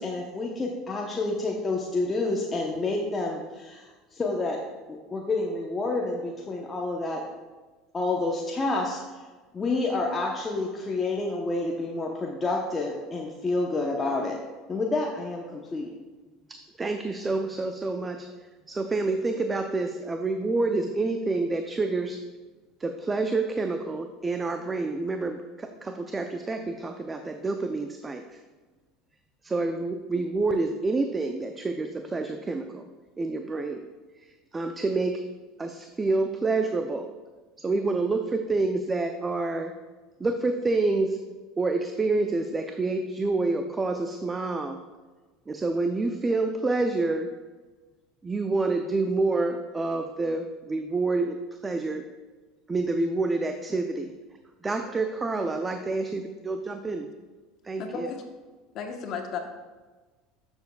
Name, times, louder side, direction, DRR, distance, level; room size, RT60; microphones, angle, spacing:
voice 1, 0.0-4.6 4.9-7.2 7.9-9.0 9.5-14.4 14.7-15.9, left 2 dB, 20° left, -1 dB, 0.8 m, -29 dB
voice 2, 16.5-18.3 18.7-22.2 22.8-28.4 29.4-32.9 33.2-33.9 34.2-35.2 35.6-37.1 37.6-39.7 40.2-41.2 41.6-44.8 45.5-47.3 48.2-52.1 52.7-54.1 54.6-57.1 57.6-58.1, right 3 dB, 20° right, 6 dB, 0.5 m, -28 dB
voice 3, 57.8-58.2 58.7-59.4, left 6 dB, 50° left, 4 dB, 1.0 m, -34 dB
11.5 x 7.1 x 2.3 m, 1.3 s
supercardioid pair, 115°, 0 cm